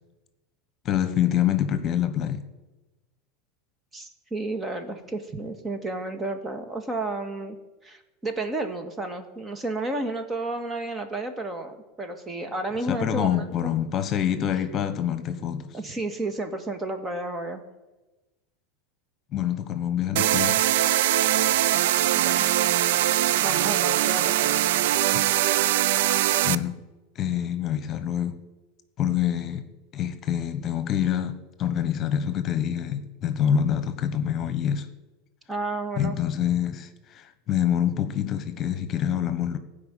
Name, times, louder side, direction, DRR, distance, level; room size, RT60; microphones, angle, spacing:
voice 1, 0.8-2.4 12.9-15.8 19.3-20.6 25.1-25.2 26.4-26.8 27.1-28.4 29.0-29.6 29.9-34.9 36.0-39.6, left 9 dB, 40° left, 1.2 m, -26 dB
voice 2, 3.9-7.6 7.8-13.7 15.7-17.6 22.1-22.4 23.4-24.5 35.5-36.2, right 2 dB, 20° right, 1.8 m, -32 dB
sound 1, 20.2-26.6, right 14 dB, 70° right, 0.4 m, -22 dB
16.0 x 5.3 x 8.9 m
hypercardioid pair, 95°, 0 cm